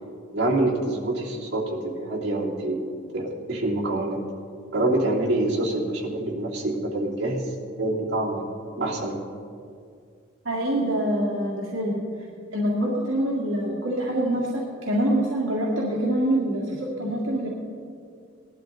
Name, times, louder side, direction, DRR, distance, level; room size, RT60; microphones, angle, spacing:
voice 1, 0.3-2.9 3.1-4.2 4.7-7.5 7.8-8.4 8.8-9.2, right 2 dB, 60° right, -5 dB, 3.1 m, -26 dB
voice 2, 10.5-12.0 12.5-17.5, right 1 dB, 75° right, -5 dB, 2.0 m, -25 dB
19.0 x 12.0 x 3.9 m, 2.3 s
head